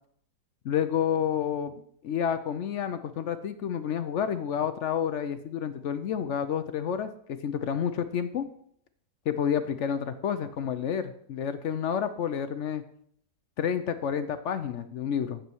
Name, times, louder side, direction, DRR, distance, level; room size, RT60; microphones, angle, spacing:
voice 1, 0.6-8.4 9.3-12.8 13.6-15.4, left 8 dB, 65° left, 10 dB, 0.7 m, -30 dB
9.8 x 7.5 x 4.6 m, 0.66 s
omnidirectional pair, 1.7 m